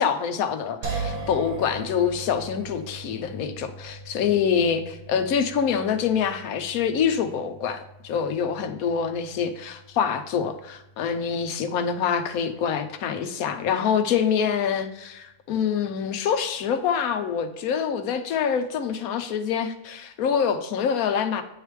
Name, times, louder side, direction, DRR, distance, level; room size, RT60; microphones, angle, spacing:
voice 1, 0.0-4.8 5.1-21.4, left 7 dB, 70° left, 7 dB, 1.0 m, -25 dB
sound 1, 0.8-13.9, right 3 dB, 80° right, 1.7 m, -40 dB
9.6 x 3.2 x 3.2 m, 0.91 s
omnidirectional pair, 1.7 m